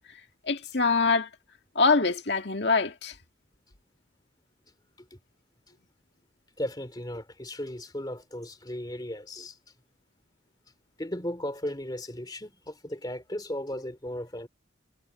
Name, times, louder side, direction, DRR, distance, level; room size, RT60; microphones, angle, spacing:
voice 1, 0.5-1.3 1.8-3.2, left 4 dB, 55° left, 2.2 m, -24 dB
voice 2, 6.6-9.5 11.0-14.5, left 1 dB, 20° left, 2.9 m, -36 dB
head